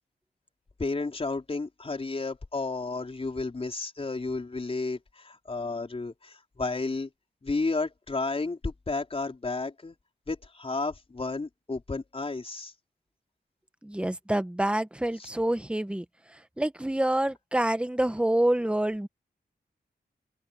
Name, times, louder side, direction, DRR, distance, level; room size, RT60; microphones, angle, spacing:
voice 1, 0.8-7.1 7.4-10.0 10.3-12.7 15.2-15.3, left 3 dB, 35° left, 4.4 m, -32 dB
voice 2, 13.8-16.0 16.6-19.1, right 1 dB, 5° right, 1.4 m, -27 dB
wide cardioid pair, 85°, 17 cm